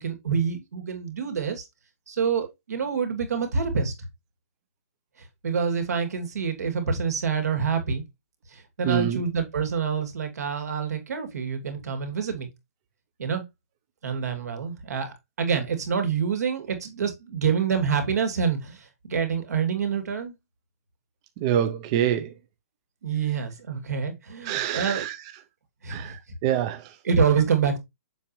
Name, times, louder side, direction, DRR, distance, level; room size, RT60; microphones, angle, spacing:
voice 1, 0.0-1.6 2.1-3.9 5.4-8.0 8.5-12.5 13.2-13.4 14.0-20.3 23.0-25.0 25.8-26.1 27.0-27.8, right 6 dB, 80° right, 2.7 m, -27 dB
voice 2, 8.8-9.2 21.4-22.3 24.4-25.2 25.9-26.9, right 10 dB, 20° right, 0.4 m, -26 dB
7.1 x 6.0 x 3.0 m
hypercardioid pair, 175°, 8 cm